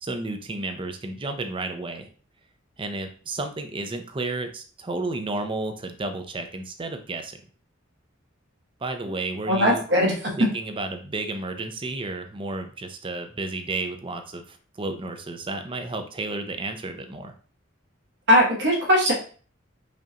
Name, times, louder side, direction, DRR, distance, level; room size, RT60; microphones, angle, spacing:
voice 1, 0.0-2.1 2.8-7.4 8.8-9.8 10.4-17.3, right 2 dB, 25° right, 7 dB, 0.5 m, -32 dB
voice 2, 9.5-10.3 18.3-19.1, equal, 65° right, -2 dB, 1.5 m, -19 dB
5.1 x 2.4 x 2.8 m, 0.40 s
head